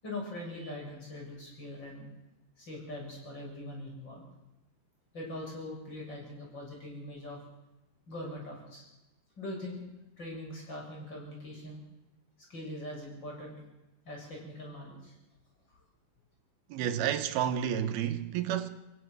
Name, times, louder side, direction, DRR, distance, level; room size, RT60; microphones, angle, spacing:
voice 1, 0.0-2.1 2.6-4.2 5.1-7.4 8.1-8.9 9.4-9.8 10.2-11.8 12.5-13.5 14.0-15.1 15.7-15.8, left 1 dB, 30° left, 8.1 m, -42 dB
voice 2, 16.7-18.7, right 9 dB, 90° right, 3.2 m, -30 dB
25.5 x 16.0 x 8.0 m
omnidirectional pair, 4.3 m